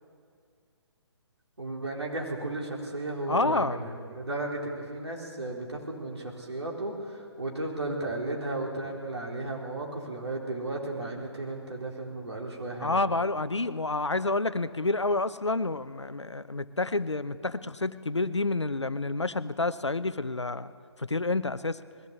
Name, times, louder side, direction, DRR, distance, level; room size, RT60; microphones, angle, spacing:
voice 1, 1.6-13.1, right 2 dB, 70° right, -1 dB, 4.0 m, -34 dB
voice 2, 3.3-3.8 12.8-20.7 21.0-21.8, left 2 dB, 80° left, 14 dB, 0.8 m, -29 dB
20.5 x 15.5 x 8.4 m, 2.2 s
figure-of-eight pair, 135°, 15 cm